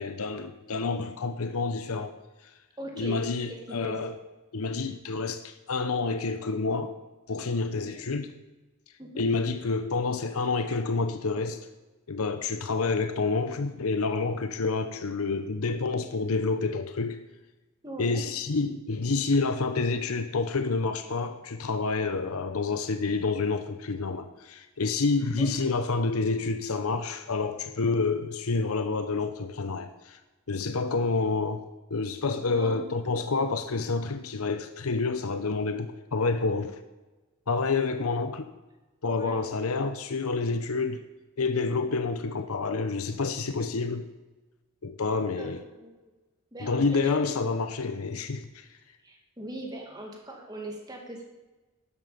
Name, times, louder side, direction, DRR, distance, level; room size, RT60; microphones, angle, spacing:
voice 1, 0.0-2.1 3.0-4.2 4.5-6.9 7.3-8.3 9.2-11.6 12.1-17.2 18.0-30.2 30.5-31.6 31.9-36.8 37.5-38.5 39.0-41.0 41.4-44.1 44.8-45.6 46.6-48.7, left 4 dB, 85° left, 9 dB, 0.8 m, -28 dB
voice 2, 2.8-4.1 7.7-7.9 9.0-9.2 17.8-18.3 25.4-25.5 32.5-33.0 39.0-39.4 45.4-46.0 46.5-47.1 49.0-51.2, right 1 dB, 20° right, 1 dB, 2.3 m, -40 dB
12.5 x 11.0 x 5.1 m, 1.1 s
head